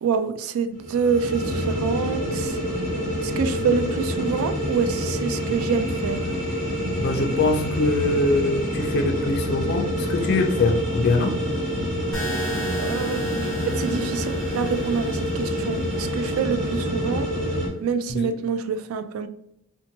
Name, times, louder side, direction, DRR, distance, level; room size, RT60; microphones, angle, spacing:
voice 1, 0.0-2.6 3.2-6.2 12.8-13.2 13.7-17.3 17.8-19.3, right 6 dB, 85° right, 13 dB, 0.3 m, -26 dB
sound 1, 0.7-17.7, equal, 40° right, 1.1 m, -27 dB
voice 2, 7.0-11.4 18.1-18.3, left 2 dB, 50° left, 3 dB, 0.4 m, -23 dB
sound 2, 12.1-16.1, right 1 dB, ahead, 1.1 m, -36 dB
2.8 x 2.1 x 2.7 m, 0.78 s
head